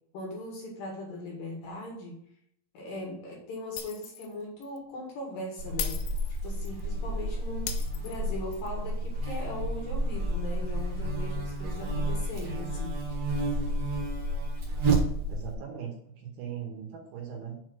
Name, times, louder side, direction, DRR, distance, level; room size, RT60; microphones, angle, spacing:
voice 1, 0.1-2.2 2.7-6.0 6.4-13.2, left 1 dB, 60° left, -2 dB, 3.0 m, -39 dB
Shatter, 3.8-4.3 4.6-4.8 5.8-6.8 7.7-8.7, left 10 dB, 85° left, 2.0 m, -38 dB
Buzz, 5.6-15.5, right 1 dB, 55° right, 1.7 m, -30 dB
voice 2, 15.3-17.6, right 8 dB, 75° right, 0 dB, 3.2 m, -39 dB
7.0 x 4.4 x 6.3 m, 0.72 s
omnidirectional pair, 5.0 m